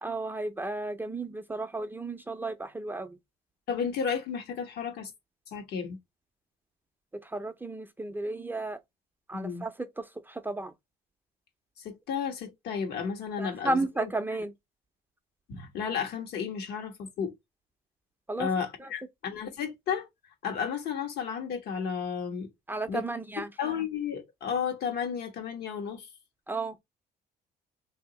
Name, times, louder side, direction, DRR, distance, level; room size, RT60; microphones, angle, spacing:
voice 1, 0.0-3.2 7.2-8.8 9.3-10.7 13.4-14.5 18.3-18.5 18.8-18.9 22.7-23.5 26.5-26.8, right 2 dB, 10° right, 0.5 m, -33 dB
voice 2, 3.7-5.1 5.5-6.0 9.3-9.7 11.8-14.1 15.5-17.3 18.4-20.1 20.4-22.5 22.9-23.0 23.6-26.1, left 7 dB, 70° left, 1.3 m, -33 dB
2.8 x 2.7 x 3.9 m
cardioid pair, 110°, 17 cm